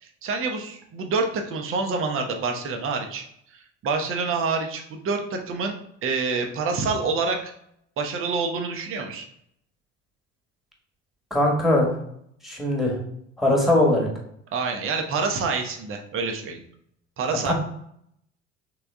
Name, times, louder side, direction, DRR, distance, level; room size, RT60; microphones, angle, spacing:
voice 1, 0.0-3.2 3.8-5.8 6.0-7.5 8.0-9.3 14.5-16.6 17.2-17.5, right 4 dB, 35° right, 4 dB, 0.8 m, -27 dB
voice 2, 11.3-11.9 12.4-13.0 13.4-14.1 17.4-17.5, left 1 dB, ahead, -1 dB, 1.4 m, -20 dB
3.9 x 3.5 x 3.4 m, 0.71 s
figure-of-eight pair, 55°, 36 cm